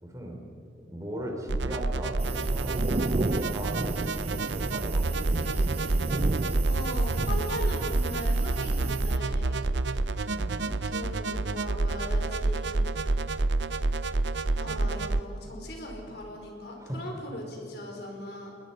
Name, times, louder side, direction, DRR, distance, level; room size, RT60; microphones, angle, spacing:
voice 1, 0.0-0.4 0.7-5.4 6.4-6.7 10.3-10.7 16.8-17.0, equal, 20° right, 1 dB, 3.4 m, -38 dB
sound 1, 1.5-15.2, right 2 dB, 75° right, 0.7 m, -28 dB
sound 2, 2.2-9.2, right 3 dB, 35° right, 0.5 m, -33 dB
voice 2, 6.6-9.7 10.6-12.7 14.6-18.5, left 1 dB, 60° left, 1 dB, 4.8 m, -39 dB
27.5 x 21.0 x 5.4 m, 2.5 s
head